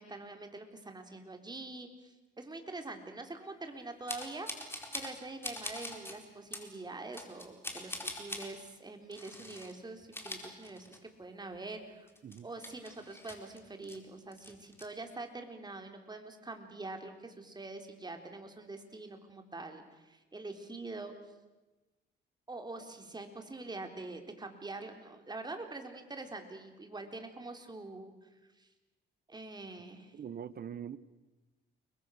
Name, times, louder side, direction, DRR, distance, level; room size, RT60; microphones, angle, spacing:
voice 1, 0.0-4.5 4.9-12.1 12.4-21.1 22.5-28.3 28.6-28.7 29.3-30.1, right 2 dB, 20° right, 5 dB, 3.9 m, -45 dB
sound 1, 4.1-5.2 5.4-6.2 6.5-6.7 7.1-8.5 9.1-9.7 10.0-11.2 11.5-11.6 12.1-14.0 14.3-14.9, left 1 dB, 10° left, 4.7 m, -43 dB
voice 2, 30.1-31.0, right 8 dB, 50° right, 16 dB, 1.2 m, -42 dB
29.5 x 22.5 x 6.6 m, 1.1 s
cardioid pair, 90°, 20 cm